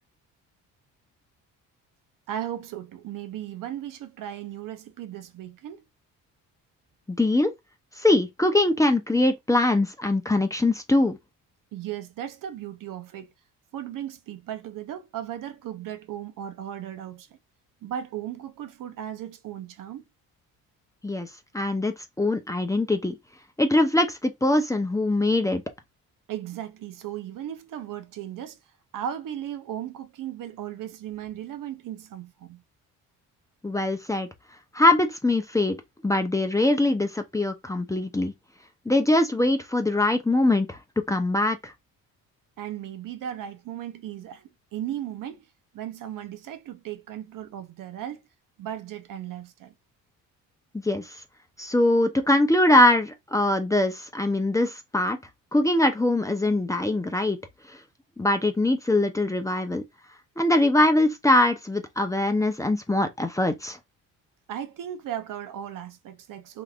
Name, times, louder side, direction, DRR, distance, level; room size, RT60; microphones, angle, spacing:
voice 1, 2.3-5.8 11.7-13.3 13.7-17.4 17.8-20.0 26.3-28.6 28.9-32.6 42.6-45.4 45.7-48.2 48.6-49.7 64.5-66.6, right 10 dB, 70° right, 0.7 m, -36 dB
voice 2, 7.1-7.5 8.0-11.2 21.0-21.3 21.5-23.2 23.6-25.6 33.6-34.3 34.7-35.8 36.0-38.3 38.9-40.8 41.1-41.7 50.7-51.1 51.6-55.2 55.5-57.4 57.7-57.8 58.2-59.8 60.4-63.8, left 2 dB, 10° left, 0.6 m, -22 dB
3.5 x 2.9 x 2.4 m
cardioid pair, 80°, 35 cm